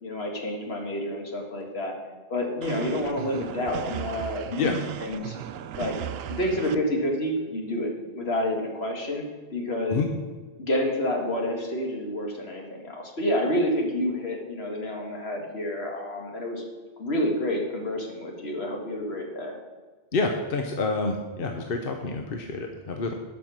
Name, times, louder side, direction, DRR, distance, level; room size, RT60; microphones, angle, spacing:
voice 1, 0.0-1.9 2.3-4.6 5.0-5.4 5.7-5.9 6.3-9.2 9.5-10.0 10.6-16.6 17.0-19.5, left 1 dB, 80° left, 0 dB, 2.1 m, -29 dB
sound 1, 2.6-6.8, right 10 dB, 75° right, 0.8 m, -36 dB
voice 2, 20.1-23.1, left 3 dB, 65° left, 3 dB, 1.1 m, -28 dB
11.5 x 5.8 x 6.3 m, 1.4 s
omnidirectional pair, 1.0 m